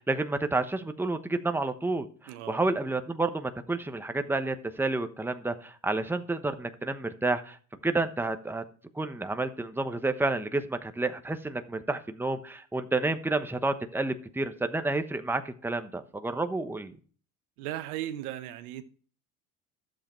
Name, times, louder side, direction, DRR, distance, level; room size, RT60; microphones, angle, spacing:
voice 1, 0.0-7.6 7.8-8.6 8.9-16.9, right 2 dB, 5° right, 1.0 m, -30 dB
voice 2, 2.3-2.6 17.6-18.8, right 13 dB, 85° right, 1.0 m, -36 dB
12.0 x 7.7 x 4.4 m
supercardioid pair, 85°, 43 cm